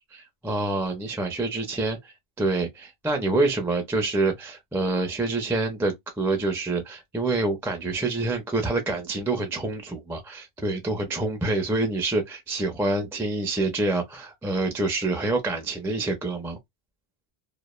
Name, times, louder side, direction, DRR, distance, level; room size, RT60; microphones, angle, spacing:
voice 1, 0.1-16.6, right 2 dB, 5° right, 0.3 m, -27 dB
2.3 x 2.0 x 3.0 m
omnidirectional pair, 1.0 m